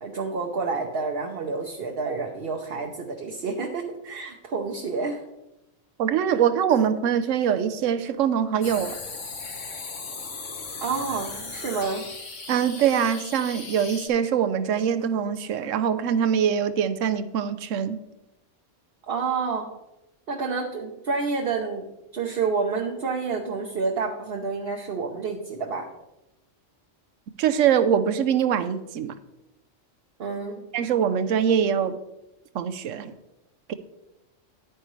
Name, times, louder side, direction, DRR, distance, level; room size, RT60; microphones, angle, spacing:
voice 1, 0.0-5.2 10.8-12.0 19.1-19.7 20.3-25.9 30.2-30.6, right 4 dB, 55° right, 1 dB, 1.0 m, -29 dB
voice 2, 6.0-8.9 12.5-18.0 27.4-29.1 30.7-32.0 32.5-33.1 33.7-33.8, right 8 dB, 90° right, 12 dB, 1.0 m, -23 dB
sound 1, 8.6-14.1, left 4 dB, 75° left, 1.6 m, -37 dB
10.0 x 9.2 x 3.2 m, 0.93 s
omnidirectional pair, 1.3 m